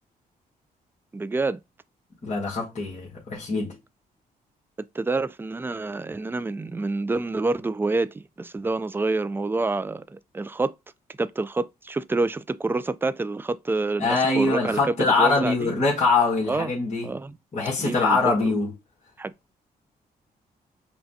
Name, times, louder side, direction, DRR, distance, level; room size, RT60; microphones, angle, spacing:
voice 1, 1.1-1.6 4.9-10.7 11.2-15.7 16.4-16.7 17.0-17.4 17.8-18.5 19.2-19.5, right 3 dB, 15° right, 0.3 m, -27 dB
voice 2, 2.2-3.8 14.0-17.1 17.5-18.7, left 3 dB, 45° left, 1.5 m, -23 dB
5.6 x 2.2 x 2.7 m
cardioid pair, 65°, 17 cm